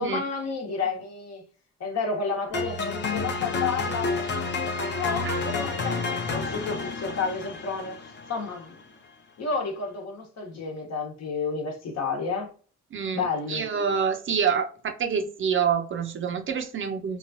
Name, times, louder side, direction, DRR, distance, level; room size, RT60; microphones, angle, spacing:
voice 1, 0.0-1.4 1.8-4.3 5.0-8.8 9.4-12.5 13.1-13.7, left 4 dB, 60° left, 1.0 m, -31 dB
sound 1, 2.5-8.6, left 3 dB, 35° left, 0.6 m, -30 dB
voice 2, 12.9-17.2, right 7 dB, 40° right, 0.5 m, -27 dB
3.0 x 2.3 x 2.6 m
cardioid pair, 90°, 30 cm